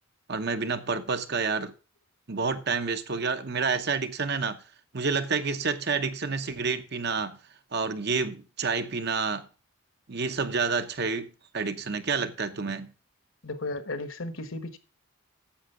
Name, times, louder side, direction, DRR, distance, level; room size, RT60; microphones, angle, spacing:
voice 1, 0.3-1.7 2.3-4.6 4.9-7.4 7.7-9.5 10.1-12.9, right 4 dB, 50° right, 0.9 m, -29 dB
voice 2, 13.4-14.8, left 2 dB, 65° left, 1.3 m, -34 dB
10.0 x 7.5 x 5.7 m
head